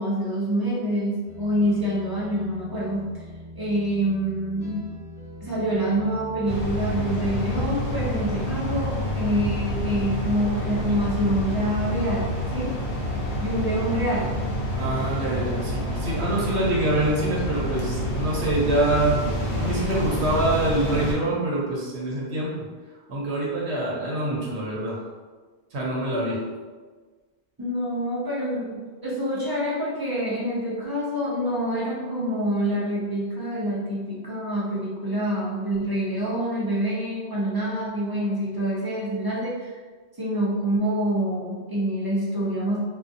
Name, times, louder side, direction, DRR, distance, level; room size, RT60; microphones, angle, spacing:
voice 1, 0.0-3.1 3.5-4.9 5.4-12.8 13.4-14.3 27.6-39.8 40.2-42.8, equal, 30° right, -8 dB, 0.4 m, -26 dB
sound 1, 1.2-20.1, equal, 10° right, 0.9 m, -41 dB
sound 2, 6.5-21.1, equal, 80° left, 0.9 m, -28 dB
voice 2, 14.8-19.2 19.6-22.5 23.1-25.0 25.7-26.4, right 2 dB, 80° right, -4 dB, 0.9 m, -25 dB
2.4 x 2.3 x 2.5 m, 1.4 s
omnidirectional pair, 1.1 m